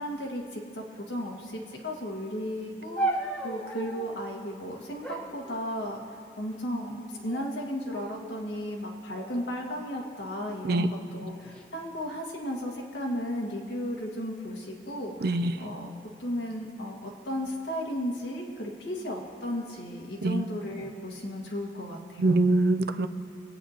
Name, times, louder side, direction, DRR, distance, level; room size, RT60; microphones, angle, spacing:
voice 1, 0.0-6.0 6.4-15.9 16.2-22.4, equal, 65° left, -1 dB, 1.6 m, -35 dB
sound 1, 3.0-4.2 5.0-6.2 7.0-7.5 7.9-8.4 9.1-10.4 11.2-11.6, right 2 dB, 5° left, 1.0 m, -36 dB
voice 2, 15.2-15.5 20.2-20.4 22.2-23.1, right 2 dB, 55° right, 10 dB, 0.5 m, -23 dB
23.5 x 8.8 x 2.9 m, 2.4 s
head